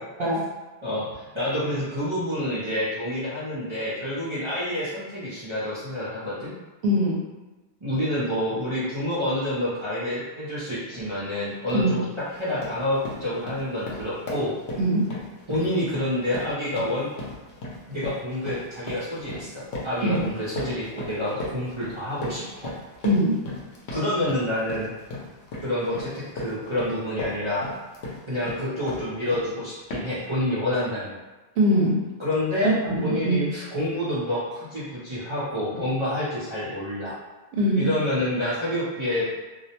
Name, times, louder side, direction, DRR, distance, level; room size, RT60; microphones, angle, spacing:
voice 1, 0.8-6.5 7.8-14.6 15.5-17.1 17.9-22.7 23.9-24.9 25.6-27.7 28.3-31.2 32.2-32.8 33.0-37.2 37.7-39.3, left 1 dB, 35° right, -11 dB, 0.5 m, -28 dB
voice 2, 6.8-7.2 11.7-11.9 14.8-15.1 20.0-20.2 23.0-23.4 31.6-32.0 32.6-33.4 37.5-37.9, equal, 75° right, -2 dB, 0.8 m, -22 dB
sound 1, 10.9-11.1 11.5-11.9 12.3-29.5 29.9-30.3, left 2 dB, 85° left, 0.9 m, -37 dB
2.4 x 2.0 x 2.8 m, 1.2 s
omnidirectional pair, 1.1 m